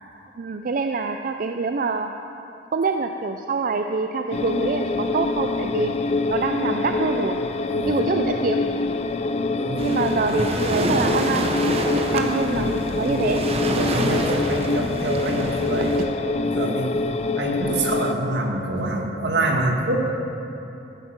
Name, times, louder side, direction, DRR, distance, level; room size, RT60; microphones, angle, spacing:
voice 1, 0.4-2.1 2.7-5.9 6.3-7.4 7.8-8.7 9.8-13.4, right 4 dB, 50° right, 6 dB, 0.4 m, -25 dB
sound 1, 4.3-18.1, left 3 dB, 40° left, 0.4 m, -25 dB
voice 2, 9.5-9.9 13.1-15.9 16.2-16.9 17.4-20.1, right 2 dB, 75° right, 1 dB, 1.6 m, -26 dB
Waves surf, 9.8-16.0, right 1 dB, 35° right, 0.9 m, -27 dB
14.0 x 8.7 x 5.9 m, 2.9 s
head